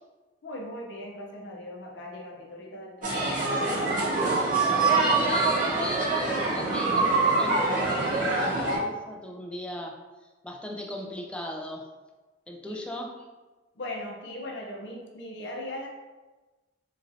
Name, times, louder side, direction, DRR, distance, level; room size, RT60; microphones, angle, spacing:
voice 1, 0.4-4.2 12.6-12.8 13.8-15.9, left 1 dB, 75° left, 0 dB, 0.6 m, -39 dB
sound 1, 3.0-8.8, right 3 dB, 45° right, 0.8 m, -24 dB
voice 2, 4.9-10.0 10.4-11.9 12.5-13.2, left 1 dB, 5° left, 0 dB, 0.3 m, -38 dB
3.0 x 2.6 x 2.5 m, 1.2 s
head